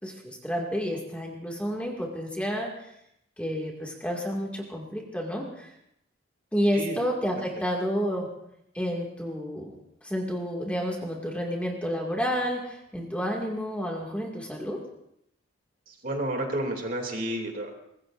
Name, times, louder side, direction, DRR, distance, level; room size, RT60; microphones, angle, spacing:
voice 1, 0.0-2.7 3.4-5.7 6.5-8.3 8.7-9.7 10.0-14.8, equal, 5° left, -1 dB, 2.1 m, -30 dB
voice 2, 15.9-17.7, right 1 dB, 45° right, 2 dB, 2.7 m, -31 dB
24.0 x 21.0 x 2.6 m, 0.79 s
head